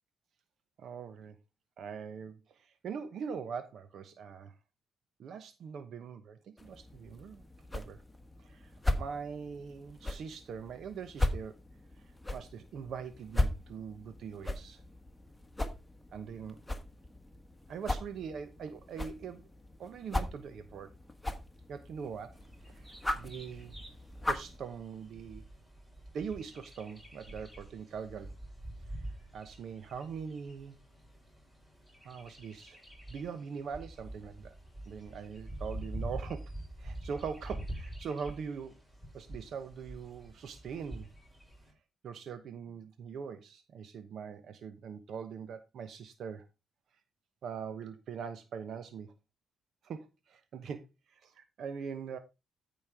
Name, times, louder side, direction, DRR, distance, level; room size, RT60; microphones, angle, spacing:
voice 1, 0.8-1.3 1.8-4.5 5.2-7.4 7.7-8.0 8.4-8.7 9.0-11.6 12.3-14.8 16.1-16.6 17.7-19.4 19.8-20.9 21.7-22.3 22.6-22.9 23.1-23.7 24.2-25.5 26.1-28.3 29.0-29.1 29.3-30.8 32.0-32.8 33.1-34.5 34.9-36.5 36.8-38.8 39.1-41.1 42.0-46.5 47.4-49.1 49.8-52.2, right 6 dB, 65° right, 1.0 m, -42 dB
sound 1, 6.6-24.6, left 1 dB, 10° left, 1.4 m, -38 dB
Bird vocalization bird call bird song, 22.3-41.7, right 1 dB, 15° right, 6.6 m, -46 dB
13.5 x 5.3 x 3.6 m
cardioid pair, 100°, 0 cm